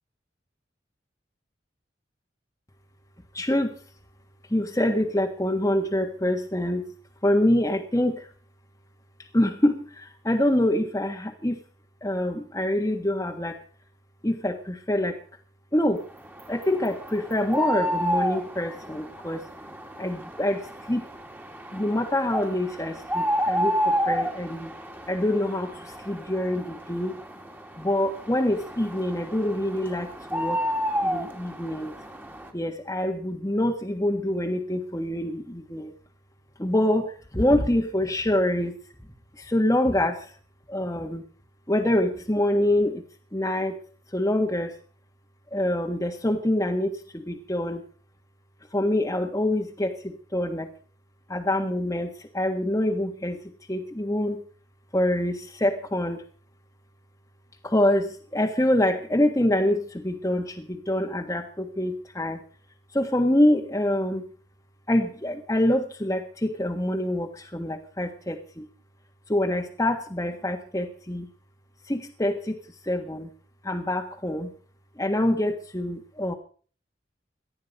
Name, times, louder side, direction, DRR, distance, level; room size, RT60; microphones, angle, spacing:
voice 1, 3.3-3.8 4.5-6.8 7.2-8.3 9.3-11.6 12.0-13.5 14.2-15.2 15.7-16.0 16.5-19.4 20.0-21.0 21.7-24.7 25.1-27.2 27.8-30.6 31.0-31.9 32.5-35.9 36.6-38.7 39.4-40.3 40.7-41.2 41.7-43.0 43.3-43.8 44.1-44.7 45.5-47.8 48.7-50.7 51.3-53.4 53.7-54.4 54.9-56.2 57.6-62.4 62.9-64.2 64.9-68.7 69.3-71.3 71.9-73.3 73.6-74.5 75.0-76.3, left 1 dB, 15° left, 2 dB, 1.6 m, -25 dB
sound 1, 16.2-32.5, equal, 10° right, 2.4 m, -31 dB
18.5 x 13.0 x 5.4 m, 0.42 s
head